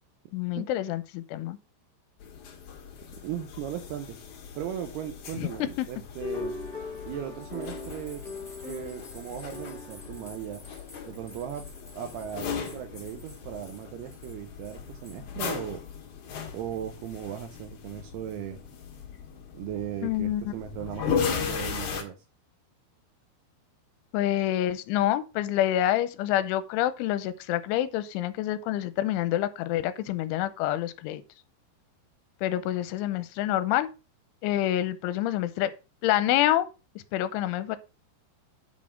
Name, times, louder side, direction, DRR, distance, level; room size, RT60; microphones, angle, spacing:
voice 1, 0.3-1.6 5.4-5.9 20.0-20.5 24.1-31.2 32.4-33.9 34.4-35.7 36.0-36.7 37.1-37.8, left 13 dB, 85° left, 3.1 m, -27 dB
sound 1, 2.2-22.0, left 7 dB, 55° left, 2.3 m, -37 dB
voice 2, 3.2-4.2 4.6-6.6 7.1-8.2 8.7-10.6 11.1-11.7 11.9-15.8 16.5-18.6 19.5-22.2, right 10 dB, 80° right, 2.3 m, -37 dB
sound 2, 6.2-11.8, left 3 dB, 20° left, 1.7 m, -40 dB
sound 3, 7.4-13.8 14.1-14.3 14.6-15.2, left 1 dB, ahead, 1.4 m, -52 dB
9.0 x 4.3 x 5.8 m
omnidirectional pair, 5.6 m